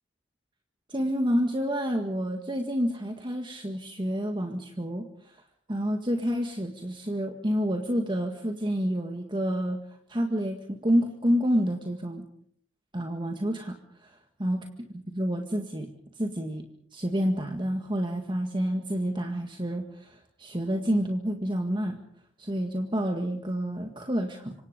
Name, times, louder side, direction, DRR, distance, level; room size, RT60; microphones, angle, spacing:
voice 1, 0.9-5.3 5.7-9.8 10.1-12.3 12.9-13.7 14.0-14.7 15.1-15.9 16.2-16.6 16.9-22.0 22.4-24.5, equal, 25° right, 4 dB, 1.8 m, -29 dB
27.5 x 24.5 x 5.2 m, 0.64 s
head